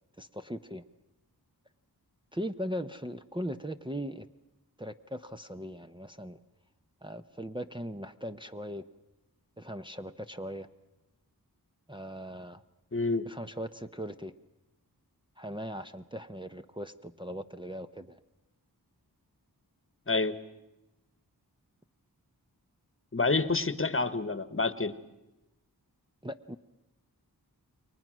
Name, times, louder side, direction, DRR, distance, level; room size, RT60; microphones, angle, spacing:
voice 1, 0.2-0.8 2.3-4.3 4.8-6.4 7.0-8.8 9.6-10.7 11.9-12.6 13.2-14.3 15.4-18.2 26.2-26.6, equal, 10° right, 6 dB, 0.8 m, -39 dB
voice 2, 12.9-13.3 20.1-20.3 23.1-24.9, left 3 dB, 35° left, 14 dB, 1.3 m, -28 dB
29.0 x 23.0 x 6.3 m, 0.98 s
wide cardioid pair, 55°, 39 cm